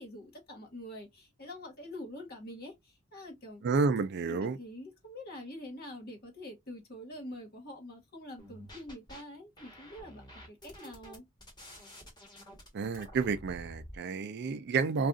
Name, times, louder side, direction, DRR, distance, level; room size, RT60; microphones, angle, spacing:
voice 1, 0.0-3.6 4.2-11.2, left 1 dB, 50° left, 1.2 m, -46 dB
voice 2, 3.6-4.6 12.7-15.1, right 4 dB, 55° right, 0.4 m, -30 dB
sound 1, 8.4-9.2 9.6-14.0, equal, 20° left, 1.2 m, -50 dB
2.4 x 2.3 x 3.7 m
head